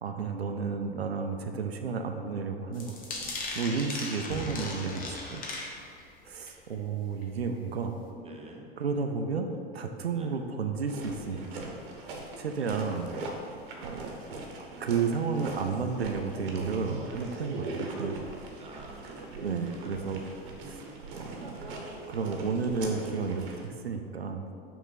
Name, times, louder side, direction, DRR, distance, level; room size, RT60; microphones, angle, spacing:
voice 1, 0.0-5.4 6.2-8.0 8.8-9.5 9.7-11.7 12.4-13.1 13.8-14.2 14.6-18.2 19.4-20.2 20.7-20.8 21.1-24.4, right 5 dB, 85° right, 5 dB, 0.5 m, -32 dB
sound 1, 2.7-6.1 6.5-6.8 7.2-7.3 7.6-7.7, left 2 dB, 30° left, 1.1 m, -37 dB
voice 2, 8.1-8.7 10.1-10.3 11.3-11.6 12.5-12.8 13.7-14.2 17.4-17.5 18.6-20.0 21.2-21.4, right 3 dB, 20° right, 0 dB, 0.8 m, -49 dB
sound 2, 10.9-23.7, right 2 dB, 60° right, 1.1 m, -41 dB
6.0 x 3.6 x 5.8 m, 2.4 s
figure-of-eight pair, 85°, 30 cm